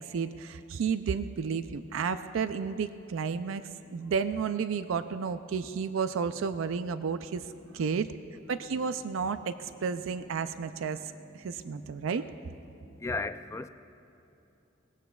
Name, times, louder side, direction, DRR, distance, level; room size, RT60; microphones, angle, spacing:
voice 1, 0.0-3.6 3.9-7.5 7.7-8.1 8.5-12.2, right 6 dB, 70° right, 11 dB, 0.4 m, -32 dB
voice 2, 10.9-12.1 12.7-13.7, left 3 dB, 15° left, 11 dB, 0.3 m, -39 dB
22.0 x 18.5 x 2.3 m, 2.7 s
head